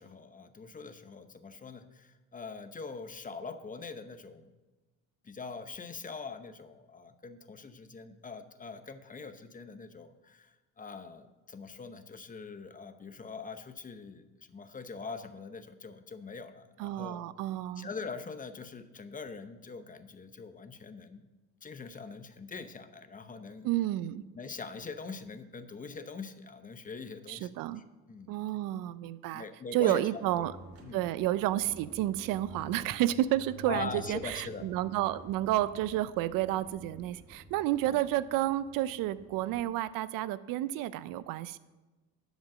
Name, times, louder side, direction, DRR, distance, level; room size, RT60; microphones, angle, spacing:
voice 1, 0.0-4.5 5.2-17.3 17.8-21.3 21.6-23.7 24.3-27.5 27.8-28.3 29.3-30.0 30.4-30.5 30.8-31.0 33.7-34.7 37.9-38.0, left 4 dB, 25° left, 10 dB, 0.8 m, -43 dB
voice 2, 16.8-17.9 23.6-24.2 27.3-27.8 28.3-29.4 29.7-30.5 30.9-41.6, right 14 dB, 75° right, 16 dB, 0.6 m, -31 dB
sound 1, 30.2-39.6, equal, 40° right, 2.7 m, -50 dB
11.5 x 5.3 x 7.3 m, 1.2 s
cardioid pair, 100°, 34 cm